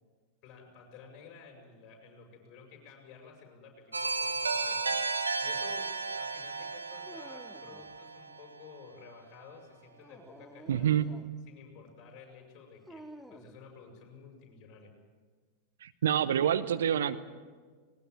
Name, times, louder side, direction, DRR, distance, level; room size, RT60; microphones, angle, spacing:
voice 1, 0.4-5.0 5.4-10.9 11.5-14.9, left 5 dB, 35° left, 2 dB, 7.3 m, -53 dB
sound 1, 3.9-8.7, right 4 dB, 75° right, 1.5 m, -34 dB
Dog, 7.0-8.0 9.9-11.4 12.9-13.6, right 1 dB, ahead, 1.2 m, -51 dB
voice 2, 10.7-11.1 15.8-17.2, right 9 dB, 60° right, 12 dB, 0.8 m, -27 dB
20.5 x 18.5 x 9.0 m, 1.5 s
figure-of-eight pair, 90°, 0 cm